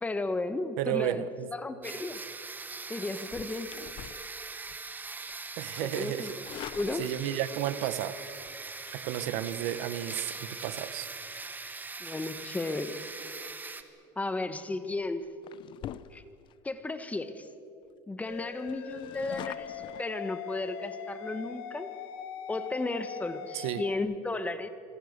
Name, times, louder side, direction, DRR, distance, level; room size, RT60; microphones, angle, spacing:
voice 1, 0.0-1.2 1.5-2.2 2.9-3.7 5.8-6.3 6.7-7.1 12.0-13.0 14.2-15.2 16.1-16.2 16.6-17.5 18.1-21.9 22.5-24.7, left 2 dB, 10° left, 11 dB, 1.5 m, -34 dB
voice 2, 0.8-1.5 5.6-8.2 8.9-11.1 23.5-23.8, right 12 dB, 75° right, 14 dB, 1.2 m, -33 dB
sound 1, 1.8-13.8, right 4 dB, 15° right, 1.5 m, -41 dB
sound 2, 3.2-4.9 5.3-5.5 6.1-7.6 8.9-9.1 14.1-14.4 14.9-15.0 15.4-16.5 17.0-17.1 17.4-17.5 17.8-17.9 18.3-20.0, left 11 dB, 45° left, 0.8 m, -45 dB
sound 3, 18.3-24.0, left 8 dB, 80° left, 1.9 m, -41 dB
27.0 x 23.0 x 6.7 m, 2.6 s
cardioid pair, 130°, 12 cm